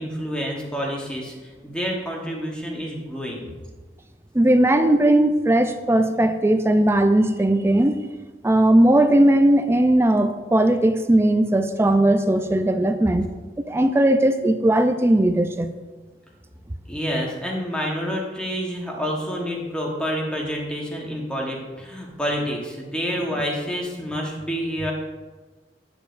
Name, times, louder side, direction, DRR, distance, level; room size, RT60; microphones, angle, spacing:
voice 1, 0.0-3.5 16.9-24.9, equal, 5° left, -2 dB, 1.1 m, -28 dB
voice 2, 4.3-8.0 8.4-13.3 13.7-15.7, right 1 dB, 15° right, 8 dB, 0.4 m, -18 dB
8.7 x 7.1 x 2.5 m, 1.3 s
head